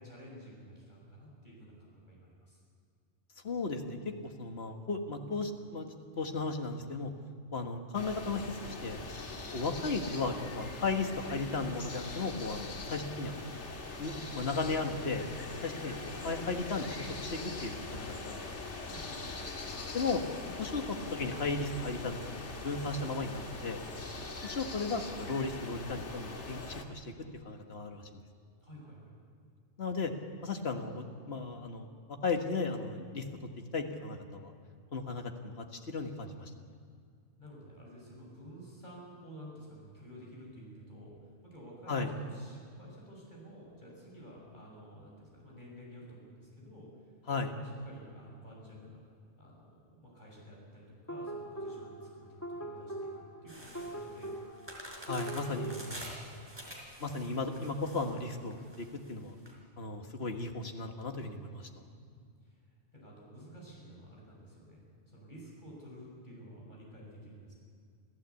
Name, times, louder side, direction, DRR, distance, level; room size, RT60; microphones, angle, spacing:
voice 1, 0.0-2.6 9.0-9.2 18.8-19.5 28.6-29.2 37.4-46.9 47.6-49.0 49.4-53.1 53.4-54.4 55.3-56.7 61.7-62.6 62.9-64.8 65.1-67.5, equal, 40° left, -3 dB, 6.7 m, -51 dB
voice 2, 3.4-5.9 6.2-7.1 7.5-9.0 9.5-13.5 14.0-15.2 15.6-18.7 19.9-20.2 20.6-22.2 22.6-23.8 24.4-27.1 27.5-28.2 29.8-30.1 30.4-31.9 32.2-33.2 33.7-34.5 34.9-36.5 41.9-42.1 47.3-47.5 55.0-55.9 57.0-59.4 59.8-61.7, left 3 dB, 65° left, 4 dB, 1.9 m, -35 dB
sound 1, 7.9-26.8, left 3 dB, 80° left, 2.2 m, -42 dB
sound 2, 51.1-55.9, right 1 dB, 15° left, 1.8 m, -42 dB
sound 3, 53.5-59.5, right 1 dB, 20° right, 4.3 m, -48 dB
27.0 x 15.0 x 8.4 m, 2.2 s
omnidirectional pair, 1.2 m